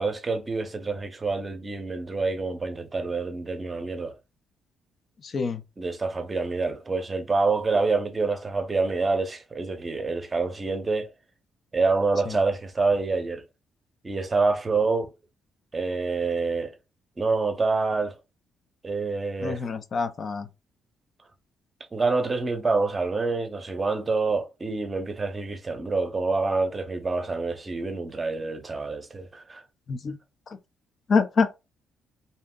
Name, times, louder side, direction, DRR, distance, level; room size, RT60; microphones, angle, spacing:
voice 1, 0.0-4.2 5.8-11.1 11.7-13.4 14.0-15.1 15.7-16.7 17.2-18.2 18.8-19.7 21.9-29.6, right 3 dB, 25° right, 0.6 m, -27 dB
voice 2, 5.2-5.6 12.3-12.4 19.4-20.5 29.9-30.2 31.1-31.6, left 5 dB, 45° left, 0.4 m, -26 dB
2.7 x 2.0 x 3.6 m
cardioid pair, 90°, 0 cm